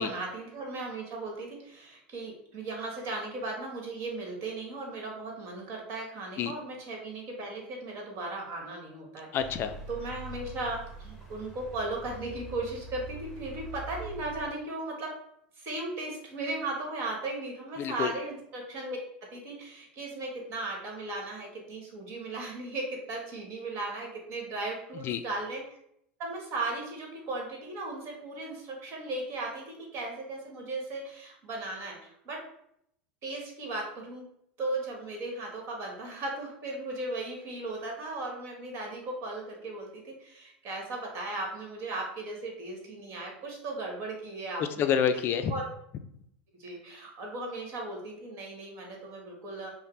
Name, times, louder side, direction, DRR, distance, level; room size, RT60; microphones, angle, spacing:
voice 1, 0.0-9.3 9.9-15.1 15.6-25.6 26.2-32.4 33.2-34.3 34.6-44.9 45.5-45.7 46.6-49.7, right 2 dB, 45° right, 0 dB, 1.5 m, -37 dB
voice 2, 9.3-9.8 17.8-18.1 25.0-25.2 44.6-45.5, left 8 dB, 40° left, 9 dB, 0.4 m, -28 dB
sound 1, 9.4-14.5, right 2 dB, ahead, 1.3 m, -44 dB
5.5 x 2.2 x 3.3 m, 0.73 s
hypercardioid pair, 90°, 6 cm